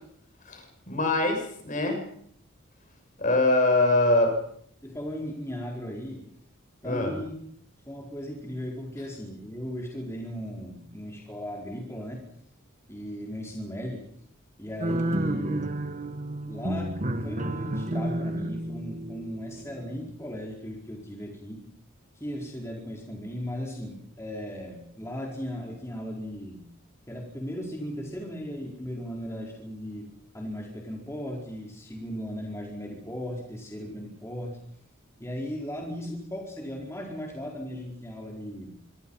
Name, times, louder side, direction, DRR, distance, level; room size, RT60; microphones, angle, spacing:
voice 1, 0.5-2.0 3.2-4.4 6.8-7.2, left 2 dB, 40° left, 4 dB, 6.8 m, -23 dB
voice 2, 4.8-6.2 6.8-7.4 7.9-12.3 12.9-14.1 14.6-15.8 16.5-21.7 22.1-26.7 27.1-34.6 35.2-38.8, equal, 15° left, -1 dB, 4.7 m, -37 dB
sound 1, 14.8-20.1, right 1 dB, 40° right, 1.7 m, -31 dB
26.0 x 25.0 x 5.8 m, 0.66 s
head